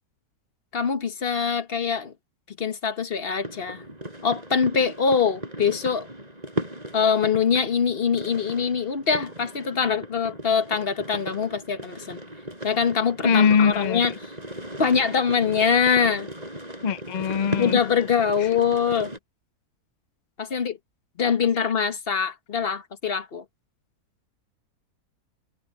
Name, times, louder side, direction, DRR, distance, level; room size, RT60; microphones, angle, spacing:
voice 1, 0.7-2.1 2.6-3.8 4.2-6.1 6.9-12.2 12.6-14.1 14.8-16.3 17.6-19.1 20.4-20.8 21.2-23.4, left 6 dB, 40° left, 1.3 m, -23 dB
sound 1, 3.4-19.2, right 1 dB, 25° right, 5.7 m, -37 dB
voice 2, 13.2-14.1 16.8-17.8, left 6 dB, 60° left, 0.4 m, -21 dB
omnidirectional pair, 1.6 m